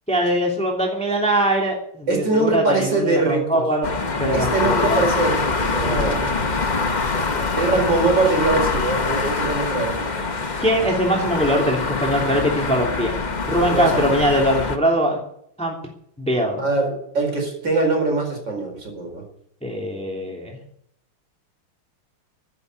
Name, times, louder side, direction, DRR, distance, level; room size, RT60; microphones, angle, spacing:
voice 1, 0.1-3.9 4.2-5.0 5.8-6.7 7.3-7.7 10.6-13.1 13.5-15.2 15.6-15.8 16.2-16.6 19.6-20.6, equal, 5° left, 0 dB, 2.8 m, -22 dB
voice 2, 2.1-3.6 4.3-6.4 7.6-10.2 13.7-14.1 16.6-19.2, right 3 dB, 55° right, 2 dB, 5.1 m, -22 dB
sound 1, 3.8-14.8, left 4 dB, 30° left, 0.8 m, -24 dB
14.5 x 8.0 x 9.4 m, 0.68 s
omnidirectional pair, 2.4 m